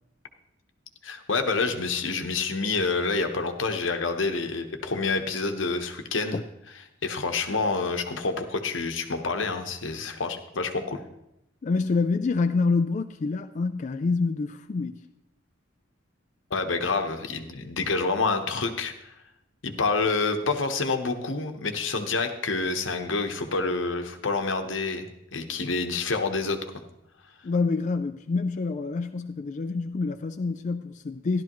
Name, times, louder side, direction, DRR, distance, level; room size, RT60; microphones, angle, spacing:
voice 1, 1.0-6.4 7.0-11.0 16.5-19.1 19.6-26.6, left 4 dB, 85° left, 1.0 m, -28 dB
voice 2, 11.6-15.1 27.4-31.4, left 4 dB, 40° left, 0.4 m, -27 dB
13.5 x 11.5 x 3.1 m
head